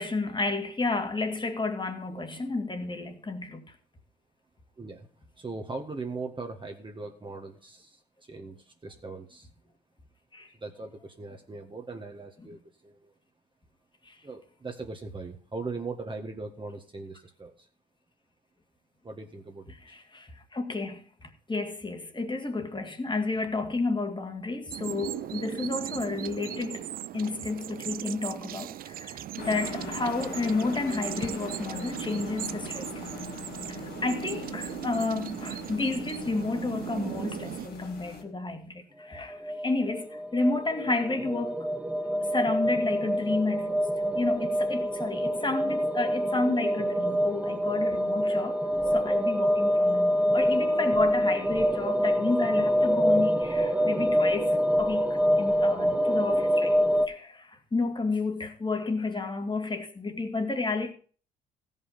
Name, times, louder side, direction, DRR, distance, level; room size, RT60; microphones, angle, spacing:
voice 1, 0.0-3.7 10.3-10.5 14.0-14.1 19.8-26.9 27.1-33.3 33.7-41.6 42.1-43.9 44.1-48.6 48.9-56.8 57.1-60.9, left 3 dB, 25° left, 2.3 m, -31 dB
voice 2, 4.8-5.1 5.4-9.5 10.5-13.1 14.2-17.7 19.0-20.0, right 3 dB, 25° right, 1.7 m, -40 dB
sound 1, 24.7-37.7, right 12 dB, 45° right, 0.4 m, -38 dB
sound 2, 29.4-38.2, left 5 dB, 50° left, 2.6 m, -41 dB
sound 3, 39.1-57.1, equal, 5° right, 1.6 m, -26 dB
16.5 x 5.6 x 5.8 m
hypercardioid pair, 50°, 20 cm